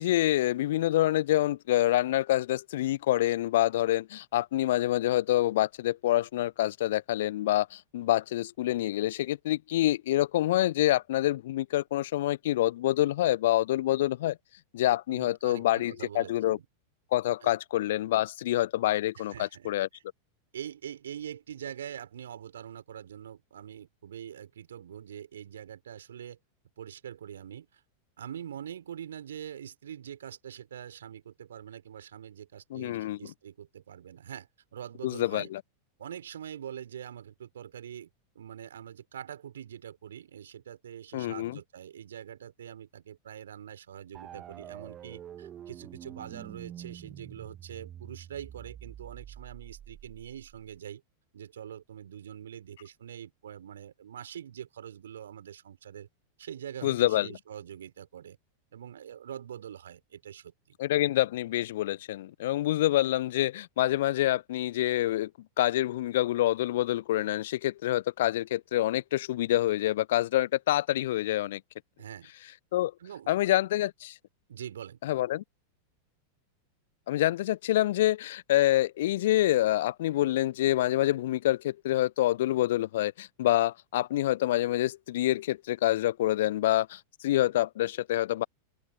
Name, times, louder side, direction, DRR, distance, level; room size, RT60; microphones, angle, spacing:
voice 1, 0.0-14.4 14.7-16.6 17.1-19.9 32.7-33.3 35.0-35.6 41.1-41.6 56.8-57.3 60.8-65.3 65.6-71.6 72.7-72.9 73.3-74.1 75.0-75.4 77.1-88.4, left 14 dB, 55° left, 1.0 m, -27 dB
voice 2, 15.1-16.7 17.4-17.5 19.2-20.0 20.5-26.4 26.8-27.8 28.2-35.5 36.0-38.1 38.4-51.0 51.3-56.1 56.4-58.4 58.7-60.5 72.0-72.3 73.0-73.5 74.5-75.0, right 9 dB, 65° right, 5.2 m, -44 dB
sound 1, 44.1-50.8, right 10 dB, 25° right, 2.3 m, -46 dB
open air
figure-of-eight pair, 90°, 0 cm